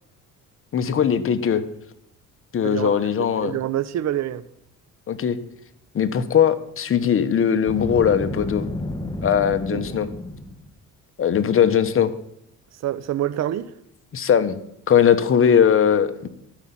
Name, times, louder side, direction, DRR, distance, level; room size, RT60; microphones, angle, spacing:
voice 1, 0.7-1.6 2.5-3.5 5.1-5.4 5.9-8.6 9.2-10.1 11.2-12.1 14.1-14.6 14.9-16.3, left 8 dB, 45° left, 1.2 m, -19 dB
voice 2, 2.6-4.4 9.7-10.0 12.8-13.7, right 12 dB, 60° right, 0.7 m, -27 dB
Boom, 7.7-10.7, left 1 dB, 15° left, 1.4 m, -31 dB
12.0 x 5.6 x 8.7 m
cardioid pair, 95°, 31 cm